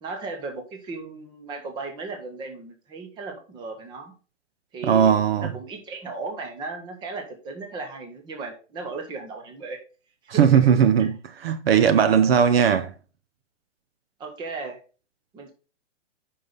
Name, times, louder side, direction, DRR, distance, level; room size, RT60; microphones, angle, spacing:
voice 1, 0.0-4.1 4.7-9.8 10.2-10.5 14.2-14.8 15.3-15.5, right 3 dB, 10° right, 1.0 m, -36 dB
voice 2, 4.8-5.5 10.3-12.9, right 8 dB, 55° right, 0.8 m, -18 dB
8.3 x 5.7 x 3.8 m
hypercardioid pair, 160°, 37 cm